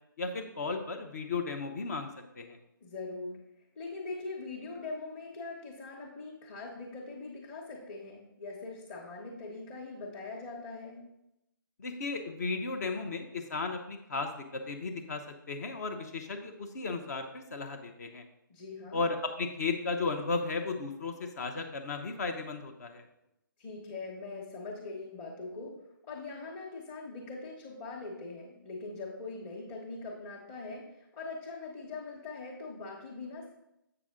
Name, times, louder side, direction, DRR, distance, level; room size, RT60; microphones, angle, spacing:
voice 1, 0.2-2.1 2.4-2.6 11.8-15.2 15.5-18.2 18.9-23.0, left 4 dB, 45° left, 6 dB, 0.8 m, -35 dB
voice 2, 2.8-3.4 3.7-11.0 18.5-19.1 23.6-25.7 26.0-33.5, left 3 dB, 25° left, -4 dB, 1.2 m, -42 dB
7.8 x 6.0 x 3.7 m, 0.85 s
figure-of-eight pair, 150°, 12 cm